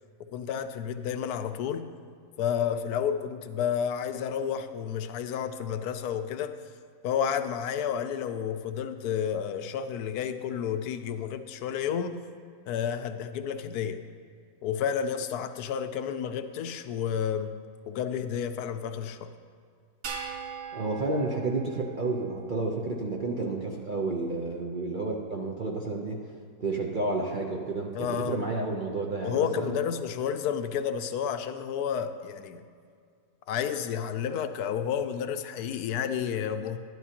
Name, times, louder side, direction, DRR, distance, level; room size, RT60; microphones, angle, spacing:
voice 1, 0.3-1.9 2.4-6.6 7.0-12.2 12.7-14.0 14.6-17.6 17.9-19.3 27.9-28.4 29.2-32.6 33.5-36.8, left 8 dB, 80° left, 9 dB, 1.1 m, -31 dB
sound 1, 20.0-22.6, right 6 dB, 65° right, 1.3 m, -40 dB
voice 2, 20.7-26.2 26.6-29.7, right 3 dB, 45° right, 0 dB, 0.7 m, -31 dB
12.0 x 11.0 x 2.9 m, 2.2 s
omnidirectional pair, 1.6 m